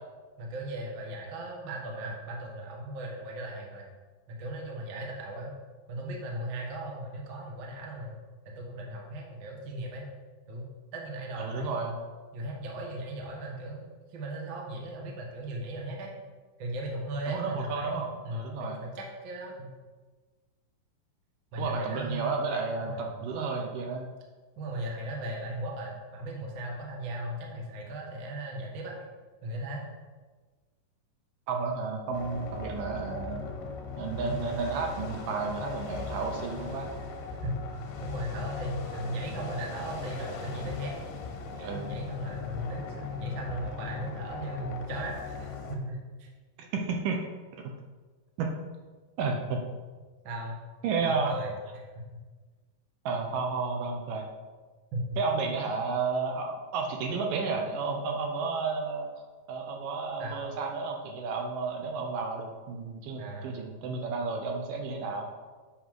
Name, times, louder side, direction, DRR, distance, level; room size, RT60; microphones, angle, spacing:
voice 1, 0.4-3.9 4.3-5.5 5.9-8.2 8.4-10.1 10.5-11.9 12.3-16.1 16.6-19.7 21.5-22.4 22.7-23.0 24.6-28.9 29.4-29.8 34.2-34.4 37.4-37.7 38.0-40.9 41.5-46.3 50.2-50.6 51.0-51.5 54.9-55.2 60.2-60.5 63.2-63.6, right 1 dB, 55° right, -1 dB, 1.4 m, -37 dB
voice 2, 11.4-12.0 17.3-18.8 21.6-24.1 31.5-33.4 34.0-36.9 41.6-42.0 46.6-47.2 48.4-48.5 49.2-49.6 50.8-51.4 53.1-54.3 55.2-59.1 59.5-65.3, right 4 dB, 75° right, 2 dB, 2.3 m, -32 dB
sound 1, 32.1-45.8, left 4 dB, 75° left, 2.4 m, -38 dB
8.1 x 6.1 x 4.7 m, 1.4 s
omnidirectional pair, 4.1 m